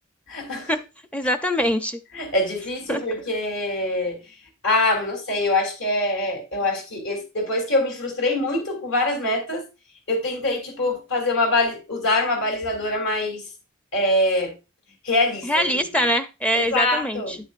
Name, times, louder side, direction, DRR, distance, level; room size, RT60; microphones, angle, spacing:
voice 1, 0.3-0.7 2.1-4.2 4.6-9.6 10.1-13.5 13.9-14.5 15.0-15.8 16.5-17.4, left 2 dB, 65° left, 3.3 m, -24 dB
voice 2, 1.1-2.0 2.9-3.0 15.4-17.4, equal, 5° left, 0.5 m, -23 dB
9.4 x 8.2 x 2.5 m
head